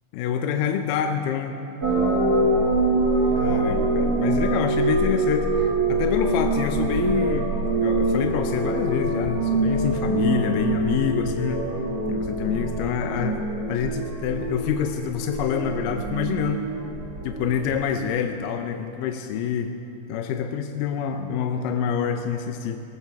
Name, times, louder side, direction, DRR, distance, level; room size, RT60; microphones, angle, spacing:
voice 1, 0.1-1.6 3.4-11.7 12.1-13.4 13.7-16.7 17.2-19.7 20.1-22.8, left 8 dB, 80° left, 6 dB, 2.3 m, -27 dB
sound 1, 1.8-17.7, right 2 dB, 30° right, 2.3 m, -24 dB
18.5 x 18.5 x 3.5 m, 2.7 s
omnidirectional pair, 3.9 m